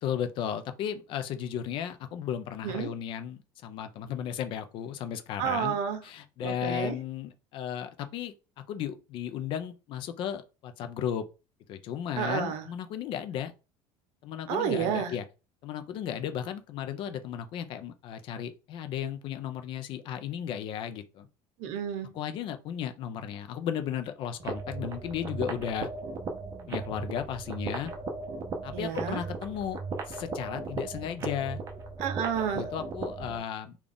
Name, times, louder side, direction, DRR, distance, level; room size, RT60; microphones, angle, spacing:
voice 1, 0.0-5.8 6.0-11.3 11.7-13.5 14.2-15.2 15.6-21.3 22.1-25.9 26.7-27.9 28.6-29.8 30.1-31.6 32.5-33.8, left 9 dB, 45° left, 0.4 m, -35 dB
voice 2, 5.4-6.0 6.4-7.0 12.2-12.6 14.5-15.1 21.6-22.1 28.7-29.2 32.0-32.7, right 8 dB, 65° right, 0.8 m, -30 dB
sound 1, 24.4-33.4, right 3 dB, 25° right, 0.6 m, -37 dB
3.8 x 2.3 x 3.4 m
cardioid pair, 175°, 12 cm